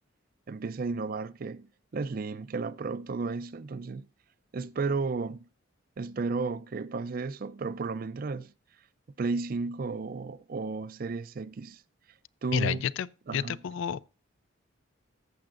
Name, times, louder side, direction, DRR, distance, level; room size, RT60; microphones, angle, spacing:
voice 1, 0.5-4.1 4.5-5.5 6.0-8.5 9.2-11.8 12.4-12.8 13.3-13.6, right 4 dB, 45° right, 0.4 m, -33 dB
voice 2, 12.5-14.1, left 8 dB, 70° left, 0.3 m, -31 dB
15.0 x 6.7 x 2.5 m
head